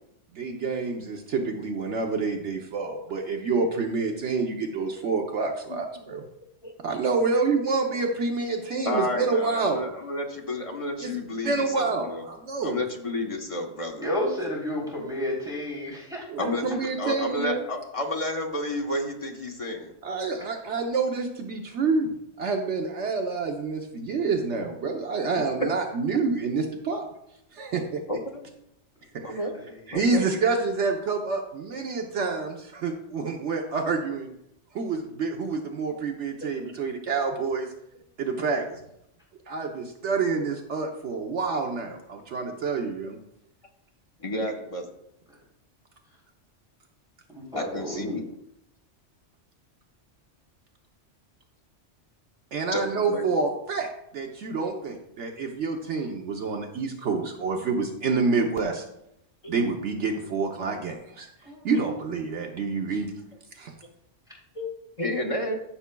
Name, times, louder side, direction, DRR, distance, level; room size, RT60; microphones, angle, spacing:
voice 1, 0.3-6.3 6.8-9.8 11.0-11.1 11.4-12.8 16.3-17.6 20.0-27.1 27.5-28.0 29.3-29.4 29.9-34.3 34.7-37.7 38.2-38.8 39.5-43.2 52.5-58.8 59.5-61.3 61.6-63.1 63.6-63.7, right 4 dB, 70° right, 2 dB, 1.2 m, -28 dB
voice 2, 8.8-12.3 12.6-14.1 16.4-19.9 25.6-25.7 28.1-28.4 29.2-29.5 29.9-30.3 36.4-36.5 37.2-37.6 44.2-44.9 47.5-48.2 52.7-53.2 59.4-59.5 64.5-64.7 65.0-65.6, left 1 dB, 30° left, 1 dB, 1.1 m, -31 dB
voice 3, 14.0-16.3 29.6-30.1 47.3-48.2 61.4-61.7, left 1 dB, 5° right, -5 dB, 3.3 m, -31 dB
14.5 x 7.0 x 2.3 m, 0.79 s
omnidirectional pair, 1.2 m